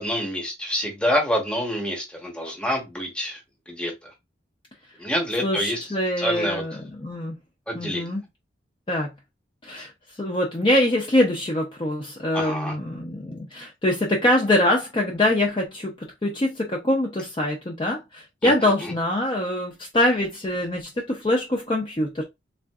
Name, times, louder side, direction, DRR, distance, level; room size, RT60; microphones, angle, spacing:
voice 1, 0.0-3.4 3.7-4.1 5.0-5.8 6.2-6.6 7.7-8.1 12.3-12.7 18.4-18.9, equal, 5° left, 0.9 m, -27 dB
voice 2, 5.4-7.4 7.7-8.2 8.9-9.1 9.6-9.9 10.2-22.2, left 1 dB, 25° left, 0.5 m, -24 dB
3.5 x 2.5 x 2.3 m
head